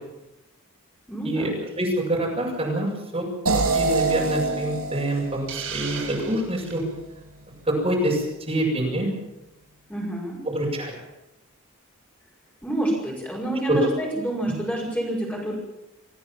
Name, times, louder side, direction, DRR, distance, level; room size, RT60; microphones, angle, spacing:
voice 1, 1.1-1.6 9.9-10.5 12.6-15.6, right 1 dB, 10° left, -2 dB, 6.5 m, -28 dB
voice 2, 1.8-2.9 3.1-3.2 3.7-6.8 7.7-9.1 10.5-10.9 13.7-13.8, right 1 dB, 25° right, -2 dB, 7.6 m, -25 dB
sound 1, 3.5-6.5, right 3 dB, 90° right, 7.9 m, -26 dB
Hiss, 5.5-6.8, right 7 dB, 65° right, 7.4 m, -35 dB
26.5 x 17.0 x 7.5 m, 0.93 s
head